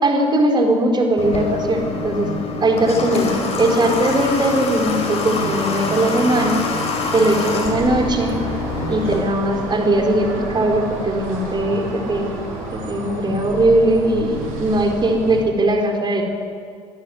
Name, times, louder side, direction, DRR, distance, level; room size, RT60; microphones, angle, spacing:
voice 1, 0.0-2.3 2.6-6.6 7.1-8.4 8.9-12.4 12.7-16.2, right 1 dB, 30° right, 2 dB, 4.3 m, -19 dB
Water / Water tap faucet, 1.2-9.2, left 3 dB, 45° left, 5.2 m, -25 dB
sound 1, 7.7-15.4, right 3 dB, 65° right, 6.7 m, -30 dB
22.5 x 12.0 x 9.6 m, 2.2 s
hypercardioid pair, 65°, 15 cm